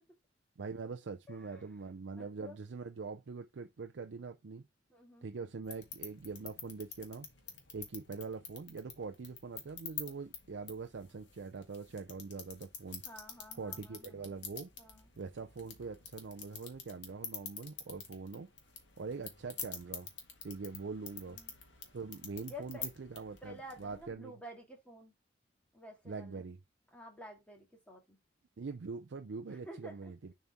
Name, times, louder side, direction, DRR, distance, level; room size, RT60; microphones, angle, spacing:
voice 1, 0.6-4.6 5.2-7.3 7.7-13.0 13.5-14.7 15.2-18.5 19.0-20.1 20.4-21.4 21.9-24.3 26.1-26.6 28.6-30.3, right 4 dB, 80° right, 0.5 m, -43 dB
voice 2, 1.3-1.7 2.2-2.6 4.9-5.5 13.1-14.5 14.8-15.1 21.3-21.5 22.5-22.9 23.4-25.1 25.7-26.5 26.9-28.2 29.4-30.3, equal, 5° left, 2.0 m, -51 dB
sound 1, 5.6-24.1, left 7 dB, 85° left, 1.8 m, -48 dB
7.0 x 4.3 x 3.5 m
head